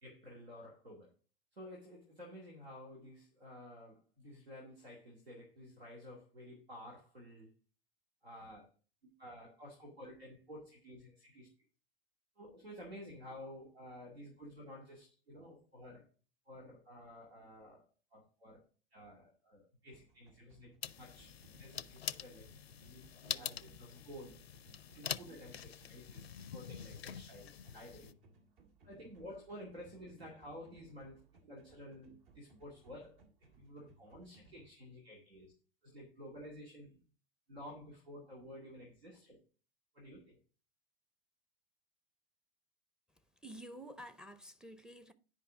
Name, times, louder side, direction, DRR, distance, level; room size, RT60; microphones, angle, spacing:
voice 1, 0.0-1.1 1.5-7.5 8.2-8.7 9.0-11.5 12.4-16.1 16.5-17.8 18.1-18.6 18.9-21.3 21.6-22.5 22.8-24.4 24.9-26.2 26.5-28.1 28.8-33.3 33.6-35.5 35.8-37.0 37.5-39.4 39.9-40.4, equal, 85° right, 2.2 m, -52 dB
sound 1, 19.9-34.7, right 4 dB, 60° right, 2.3 m, -64 dB
sound 2, 20.8-28.1, left 9 dB, 85° left, 0.5 m, -45 dB
voice 2, 43.4-45.1, right 1 dB, ahead, 0.5 m, -50 dB
10.0 x 5.2 x 3.6 m
figure-of-eight pair, 90°, 30 cm